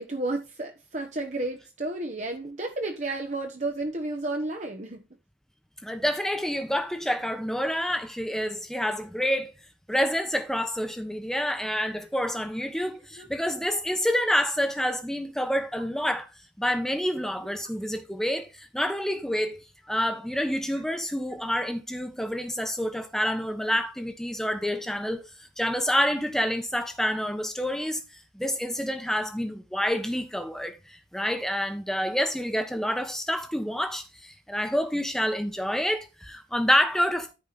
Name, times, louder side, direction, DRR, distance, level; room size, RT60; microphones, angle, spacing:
voice 1, 0.0-5.1 13.2-13.3, right 2 dB, 40° right, 1.2 m, -32 dB
voice 2, 5.8-9.5 9.9-16.3 16.6-19.6 19.8-25.3 25.6-28.0 28.3-37.3, equal, 5° left, 1.3 m, -28 dB
13.5 x 5.0 x 4.1 m
head